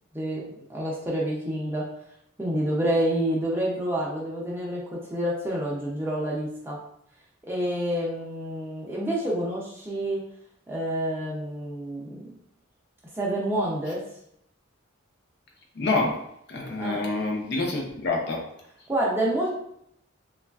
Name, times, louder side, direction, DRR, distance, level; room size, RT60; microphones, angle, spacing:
voice 1, 0.1-0.4 0.7-1.9 2.4-6.8 7.4-10.2 10.7-12.3 13.1-14.0 16.8-17.1 18.9-19.5, right 1 dB, 10° right, -4 dB, 0.4 m, -28 dB
voice 2, 15.8-16.1 16.5-18.4, left 3 dB, 55° left, 0 dB, 0.6 m, -27 dB
3.1 x 2.3 x 2.3 m, 0.73 s
head